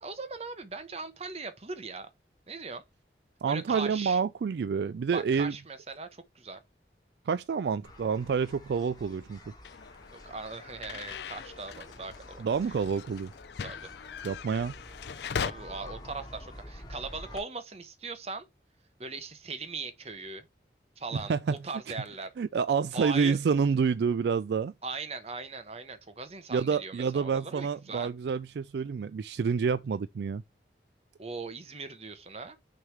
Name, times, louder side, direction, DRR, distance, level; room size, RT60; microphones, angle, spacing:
voice 1, 0.0-2.1 2.5-2.8 3.5-4.2 5.1-6.6 10.1-12.5 13.6-13.9 15.4-18.4 19.0-20.5 21.0-21.3 21.6-22.3 22.9-23.4 24.8-28.1 31.2-32.6, right 4 dB, 35° right, 1.0 m, -39 dB
voice 2, 3.4-5.5 7.3-9.4 12.4-13.3 14.2-14.7 21.3-21.6 22.4-24.7 26.5-30.4, right 6 dB, 65° right, 0.3 m, -28 dB
sound 1, 7.8-17.4, equal, 20° left, 1.3 m, -49 dB
sound 2, 9.6-15.5, left 6 dB, 70° left, 0.4 m, -40 dB
6.4 x 3.4 x 4.5 m
head